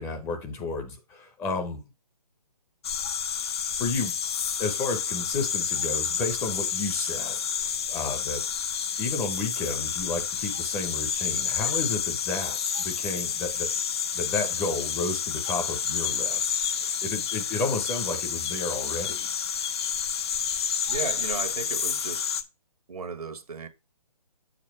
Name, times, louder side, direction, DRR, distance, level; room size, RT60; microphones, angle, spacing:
voice 1, 0.0-1.8 3.8-4.1 4.6-8.4 9.0-13.7 14.1-19.3, left 3 dB, 10° left, 0.9 m, -32 dB
sound 1, 2.8-22.4, left 7 dB, 45° left, 0.7 m, -29 dB
voice 2, 20.9-22.4 22.9-23.7, right 5 dB, 75° right, 1.3 m, -35 dB
7.5 x 4.4 x 4.5 m
hypercardioid pair, 150°, 19 cm